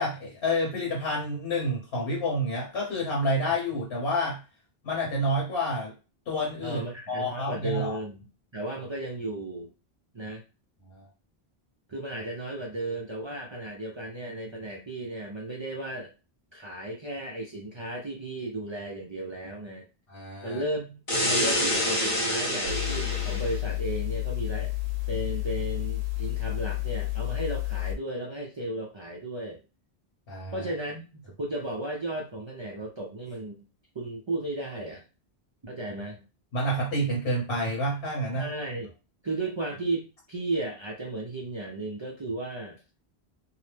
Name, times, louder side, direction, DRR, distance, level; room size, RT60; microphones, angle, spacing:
voice 1, 0.0-4.4 4.8-5.9 6.3-8.0 10.9-11.1 20.1-20.6 30.3-30.6 36.5-38.5, equal, 75° left, -3 dB, 1.3 m, -29 dB
voice 2, 6.6-8.2 8.5-9.7 10.1-10.4 11.9-16.1 16.5-19.9 20.4-24.7 25.1-29.6 30.5-33.6 33.9-35.0 35.6-36.3 38.3-38.9 39.2-42.8, right 2 dB, 40° right, -1 dB, 0.4 m, -34 dB
sound 1, 21.1-23.6, left 1 dB, 35° left, 0.7 m, -27 dB
sound 2, 22.7-28.0, left 21 dB, 65° right, 0.7 m, -30 dB
2.7 x 2.0 x 3.2 m, 0.31 s
omnidirectional pair, 1.1 m